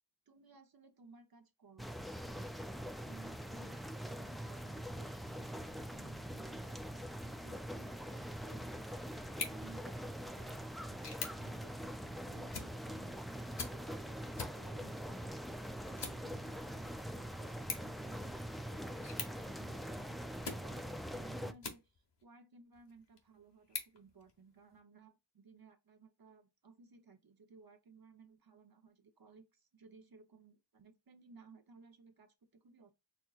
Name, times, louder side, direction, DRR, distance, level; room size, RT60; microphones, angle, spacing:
voice 1, 0.3-2.0 3.0-8.7 9.2-15.5 15.9-32.9, right 4 dB, 55° right, 0.8 m, -60 dB
sound 1, 1.8-21.5, equal, ahead, 0.3 m, -43 dB
sound 2, 21.1-22.2 22.7-24.8, left 4 dB, 75° left, 1.0 m, -48 dB
4.5 x 3.5 x 2.4 m
wide cardioid pair, 60°, 42 cm